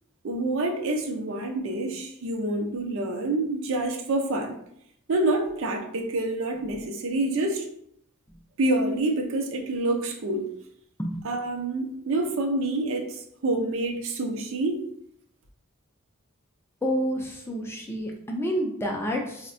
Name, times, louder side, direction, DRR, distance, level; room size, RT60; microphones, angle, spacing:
voice 1, 0.2-4.6 5.1-7.6 8.6-10.4 11.2-14.8, right 2 dB, 65° right, 3 dB, 0.5 m, -27 dB
voice 2, 16.8-19.5, equal, 10° left, 0 dB, 0.3 m, -29 dB
3.5 x 2.1 x 2.5 m, 0.71 s
head